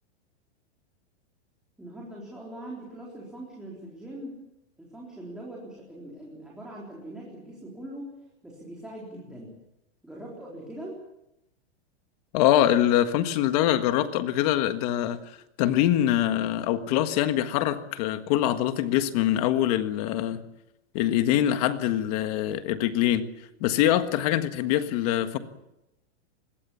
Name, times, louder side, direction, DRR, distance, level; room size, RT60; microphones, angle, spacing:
voice 1, 1.8-4.4 4.8-9.5 10.0-11.0, right 1 dB, ahead, 3.9 m, -41 dB
voice 2, 12.3-15.2 15.6-20.4 20.9-23.3 23.6-25.4, left 12 dB, 35° left, 1.6 m, -24 dB
25.0 x 21.0 x 7.1 m
supercardioid pair, 175°, 34 cm